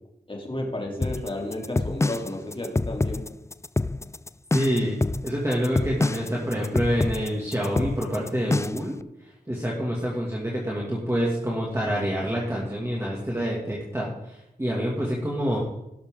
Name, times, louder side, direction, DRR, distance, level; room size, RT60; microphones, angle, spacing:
voice 1, 0.3-3.2, left 1 dB, 35° left, 0 dB, 3.1 m, -32 dB
sound 1, 1.0-8.9, left 2 dB, 15° left, 0.3 m, -26 dB
voice 2, 4.5-8.9 9.5-15.6, equal, 15° right, -5 dB, 2.5 m, -27 dB
17.5 x 7.2 x 3.9 m, 0.89 s
wide cardioid pair, 60°, 16 cm